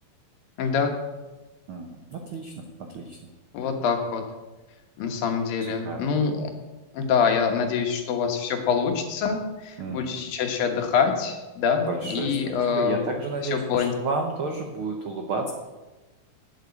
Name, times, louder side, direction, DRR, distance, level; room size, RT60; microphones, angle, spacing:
voice 1, 0.6-0.9 3.5-4.2 5.0-6.5 6.9-13.1 13.4-13.9, left 6 dB, 80° left, 4 dB, 3.1 m, -25 dB
voice 2, 1.7-2.5 2.9-3.2 5.6-6.1 9.8-10.2 11.9-15.5, right 3 dB, 80° right, 3 dB, 1.1 m, -31 dB
9.0 x 8.0 x 8.5 m, 1.1 s
omnidirectional pair, 4.0 m